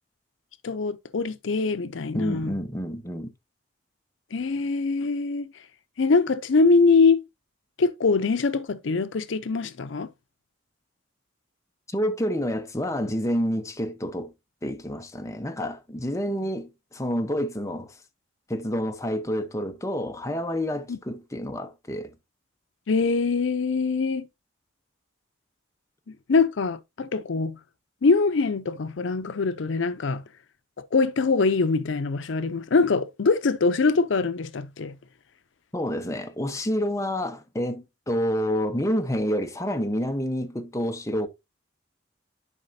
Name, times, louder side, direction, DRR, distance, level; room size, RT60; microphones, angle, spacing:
voice 1, 0.6-2.5 4.3-5.5 6.0-7.2 7.8-10.1 20.9-21.0 22.9-24.3 26.3-27.6 28.0-30.2 30.9-34.9, left 4 dB, 75° left, 0.5 m, -23 dB
voice 2, 2.1-3.3 11.9-14.3 14.6-18.0 18.5-22.1 35.7-41.3, equal, 15° left, 0.8 m, -28 dB
11.0 x 4.8 x 2.7 m
head